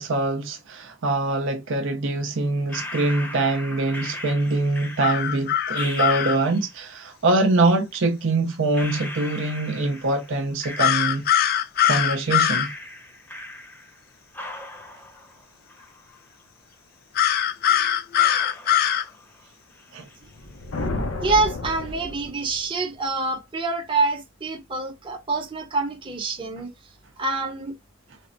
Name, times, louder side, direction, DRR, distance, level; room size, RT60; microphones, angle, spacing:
voice 1, 0.0-11.2 11.9-12.7 19.9-20.1, right 2 dB, 60° right, 0.5 m, -24 dB
sound 1, 2.7-6.8 7.9-8.0 8.7-11.4 11.8-14.0 14.3-16.4 16.7-16.8 17.5-17.6 18.1-19.5 19.7-20.3, left 1 dB, 10° left, 0.7 m, -38 dB
sound 2, 5.0-6.4 10.8-12.7 17.1-19.0, left 10 dB, 45° left, 0.3 m, -21 dB
sound 3, 20.3-22.8, left 2 dB, 70° left, 0.7 m, -31 dB
voice 2, 21.2-26.7 27.2-27.7, right 3 dB, 25° right, 0.8 m, -26 dB
3.4 x 2.0 x 2.5 m
head